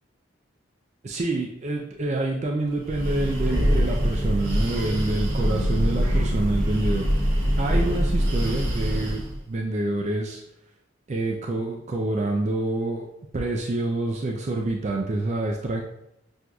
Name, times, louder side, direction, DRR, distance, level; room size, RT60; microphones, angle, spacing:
voice 1, 1.0-10.4 11.1-13.1 13.3-15.8, right 2 dB, 35° right, 0 dB, 0.3 m, -27 dB
Breathing, 2.8-9.4, equal, 80° right, 1.0 m, -24 dB
Keyboard (musical), 5.4-8.2, left 2 dB, 70° left, 0.4 m, -40 dB
6.0 x 2.6 x 2.3 m, 0.80 s
head